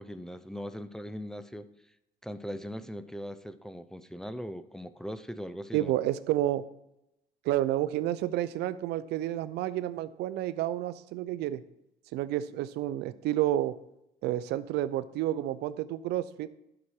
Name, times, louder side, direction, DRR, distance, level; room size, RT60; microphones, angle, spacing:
voice 1, 0.0-1.7 2.2-5.9, equal, 5° left, 11 dB, 0.5 m, -40 dB
voice 2, 5.7-6.6 7.4-11.6 12.1-13.7 14.2-16.5, right 13 dB, 80° right, 14 dB, 0.5 m, -30 dB
11.5 x 5.9 x 4.7 m, 0.85 s
cardioid pair, 110°, 17 cm